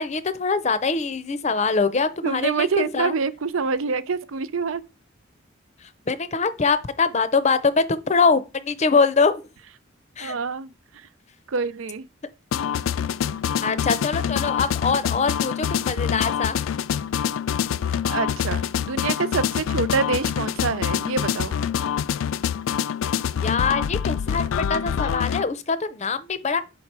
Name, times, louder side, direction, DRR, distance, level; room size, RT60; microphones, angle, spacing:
voice 1, 0.0-3.2 6.1-9.4 10.2-10.3 13.6-16.6 23.4-26.6, left 4 dB, 35° left, 0.6 m, -23 dB
voice 2, 2.2-4.8 10.2-10.7 11.5-12.1 18.0-21.6, right 5 dB, 85° right, 0.5 m, -26 dB
sound 1, 12.5-25.4, left 8 dB, 85° left, 0.4 m, -25 dB
5.7 x 4.3 x 4.6 m
head